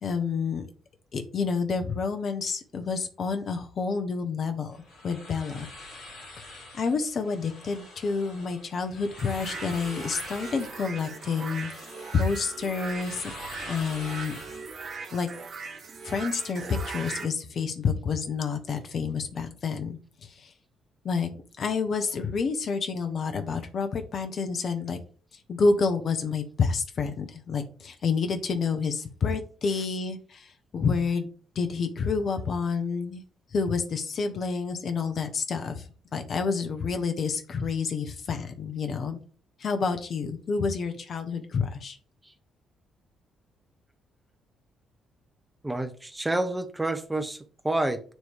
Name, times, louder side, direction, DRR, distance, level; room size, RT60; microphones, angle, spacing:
voice 1, 0.0-0.7 1.1-4.8 5.0-5.7 6.4-11.7 12.1-13.3 13.7-14.4 15.1-15.3 16.0-20.5 21.0-21.3 21.6-25.0 25.5-30.5 30.7-31.3 31.5-33.2 33.5-35.8 36.1-39.2 39.6-42.0, left 5 dB, 50° left, 0.9 m, -29 dB
sound 1, 4.7-15.0, left 2 dB, 65° left, 2.3 m, -45 dB
sound 2, 9.2-17.3, right 5 dB, 50° right, 0.8 m, -40 dB
voice 2, 45.6-48.0, right 2 dB, 15° right, 0.9 m, -29 dB
9.1 x 3.1 x 3.4 m
figure-of-eight pair, 40°, 0 cm